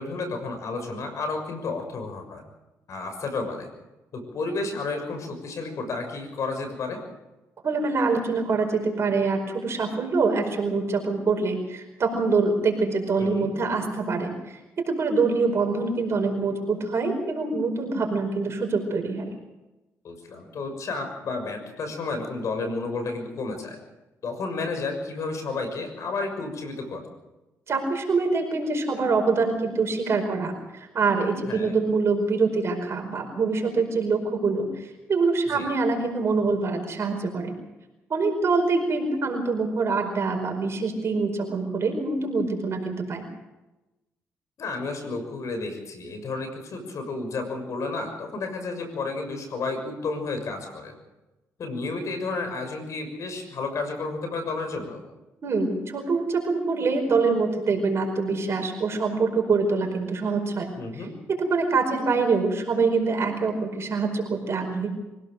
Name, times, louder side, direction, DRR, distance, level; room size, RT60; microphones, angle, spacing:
voice 1, 0.0-2.4 2.9-3.7 4.1-7.0 13.2-13.5 20.0-23.8 24.2-27.1 31.5-31.7 35.5-35.7 44.6-51.0 51.6-55.0 60.8-61.1, left 3 dB, 60° left, 6 dB, 6.5 m, -31 dB
voice 2, 7.6-19.3 27.7-37.6 38.1-43.3 55.4-60.7 60.9-61.0 61.5-64.9, right 4 dB, 50° right, 3 dB, 5.0 m, -25 dB
25.0 x 17.0 x 6.7 m, 1.0 s
cardioid pair, 85°, 6 cm